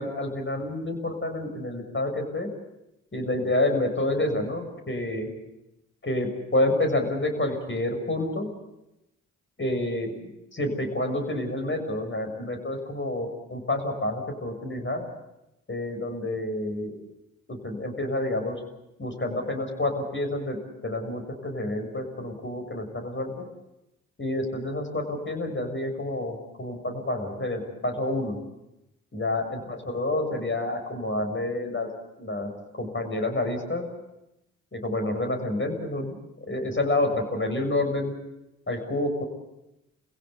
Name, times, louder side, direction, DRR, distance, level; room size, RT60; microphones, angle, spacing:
voice 1, 0.0-2.5 3.1-5.3 6.0-8.5 9.6-15.0 15.7-17.0 17.5-18.6 19.0-20.6 20.8-23.4 24.2-28.4 29.1-31.9 32.2-33.8 34.7-38.1 38.7-39.2, left 1 dB, 30° left, 4 dB, 6.7 m, -28 dB
27.5 x 16.5 x 8.3 m, 0.91 s
hypercardioid pair, 40°, 37 cm